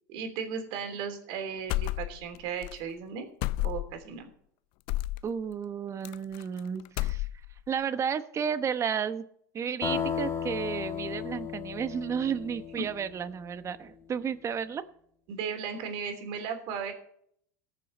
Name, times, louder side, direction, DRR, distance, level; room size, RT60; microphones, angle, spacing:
voice 1, 0.1-3.3 3.6-4.2 15.3-16.9, right 6 dB, 65° right, 5 dB, 3.2 m, -36 dB
sound 1, 1.7-2.4 2.6-2.8 3.4-4.0 4.9-5.2 6.0-6.6 6.9-7.6, left 17 dB, 60° left, 0.4 m, -31 dB
voice 2, 5.2-7.3 7.7-9.2 9.5-14.8, right 7 dB, 30° right, 12 dB, 0.9 m, -32 dB
sound 2, 9.8-13.6, left 7 dB, 30° left, 1.6 m, -35 dB
19.0 x 6.8 x 4.1 m, 0.66 s
hypercardioid pair, 100°, 10 cm